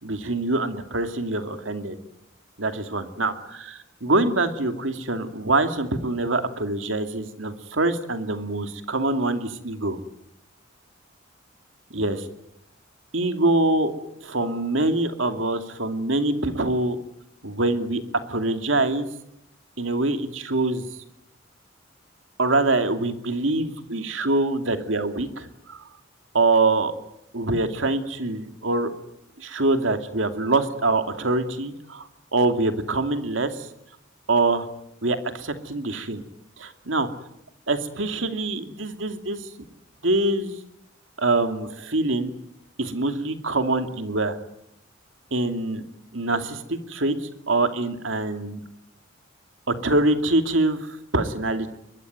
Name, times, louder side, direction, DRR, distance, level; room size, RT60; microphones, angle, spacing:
voice 1, 0.0-2.0 2.6-10.0 11.9-12.3 13.1-13.9 14.2-17.0 17.4-19.1 19.8-20.9 22.4-25.8 26.3-26.9 27.3-28.9 29.4-33.7 34.3-34.7 35.0-36.2 36.6-37.1 37.7-39.5 40.0-40.5 41.2-42.3 42.8-44.3 45.3-45.8 46.1-48.6 49.7-51.7, right 2 dB, 75° right, 7 dB, 2.5 m, -24 dB
22.5 x 21.5 x 9.4 m, 0.81 s
head